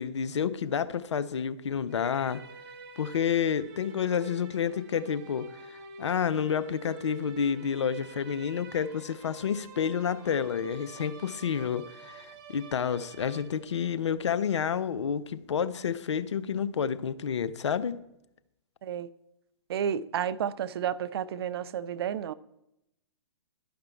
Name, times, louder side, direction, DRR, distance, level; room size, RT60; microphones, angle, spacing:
voice 1, 0.0-2.4 3.0-18.0, left 7 dB, 75° left, 0.5 m, -29 dB
sound 1, 1.9-14.0, right 5 dB, 40° right, 1.0 m, -49 dB
voice 2, 19.7-22.3, right 9 dB, 60° right, 0.4 m, -31 dB
12.0 x 5.1 x 4.4 m
figure-of-eight pair, 120°, 15 cm